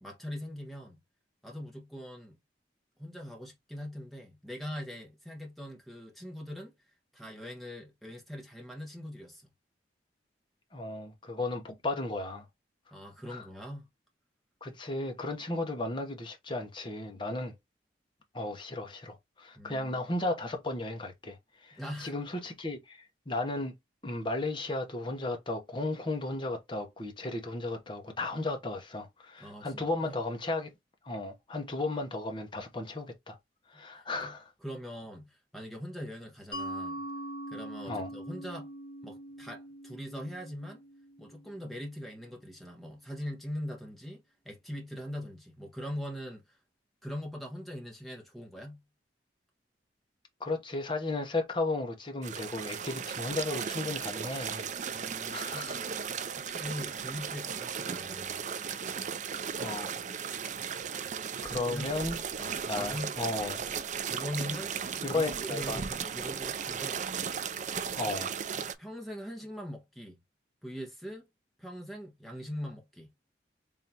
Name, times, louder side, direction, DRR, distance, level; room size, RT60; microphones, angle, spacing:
voice 1, 0.0-1.0 1.4-2.4 3.0-6.7 7.1-9.5 12.9-13.9 19.5-20.0 21.7-22.1 29.4-30.2 34.2-34.3 34.6-37.0 37.5-38.7 39.0-40.8 41.2-46.6 47.0-48.8 54.9-56.1 56.4-58.4 61.5-61.9 62.4-63.5 64.1-67.1 68.0-68.2 68.5-70.2 70.6-71.3 71.6-73.1, equal, ahead, 1.2 m, -42 dB
voice 2, 10.7-12.4 13.3-13.4 14.6-17.5 18.3-21.4 21.6-23.7 24.0-30.7 31.0-33.4 33.7-34.5 37.9-38.1 50.4-54.7 54.9-55.9 59.6-60.0 61.4-62.2 62.7-63.6 65.0-65.8 67.9-68.3, left 2 dB, 25° left, 0.9 m, -34 dB
Mallet percussion, 36.5-41.9, right 1 dB, 50° left, 2.3 m, -42 dB
sound 1, 52.2-68.7, right 7 dB, 45° right, 0.4 m, -36 dB
3.7 x 3.3 x 2.7 m
head